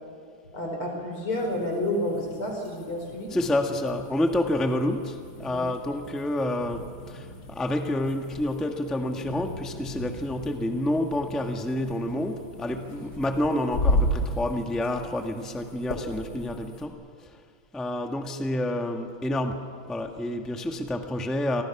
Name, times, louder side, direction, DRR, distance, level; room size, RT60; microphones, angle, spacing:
voice 1, 0.5-3.4 5.5-5.7, left 1 dB, 75° left, 1 dB, 6.0 m, -30 dB
sound 1, 1.3-16.9, left 1 dB, 55° left, 3.4 m, -35 dB
voice 2, 3.3-17.0 17.7-21.6, left 1 dB, ahead, 3 dB, 1.2 m, -28 dB
29.5 x 24.0 x 6.0 m, 2.2 s
omnidirectional pair, 2.4 m